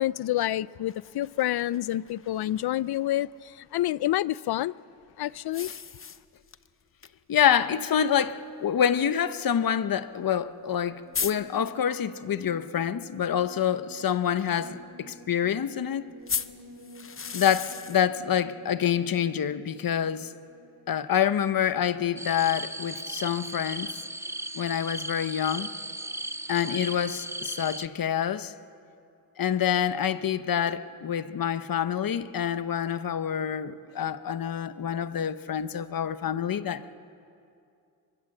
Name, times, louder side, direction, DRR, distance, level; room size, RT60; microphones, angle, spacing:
voice 1, 0.0-4.7 5.2-5.7, left 14 dB, 85° left, 0.5 m, -28 dB
sound 1, 0.9-3.0 5.5-6.7 7.0-7.1 7.5-7.6 8.5-8.6 10.4-10.5 10.7-10.8 11.1-11.3 16.3-18.0, left 6 dB, 35° left, 0.8 m, -35 dB
voice 2, 7.3-16.0 17.3-20.3 20.9-23.9 24.5-25.7 26.5-28.5 29.4-36.8, left 9 dB, 65° left, 0.9 m, -27 dB
sound 2, 10.9-22.8 23.2-23.3, right 1 dB, 70° right, 5.6 m, -52 dB
sound 3, 22.2-27.9, right 1 dB, 5° right, 0.6 m, -36 dB
23.0 x 23.0 x 7.8 m
wide cardioid pair, 95°, 37 cm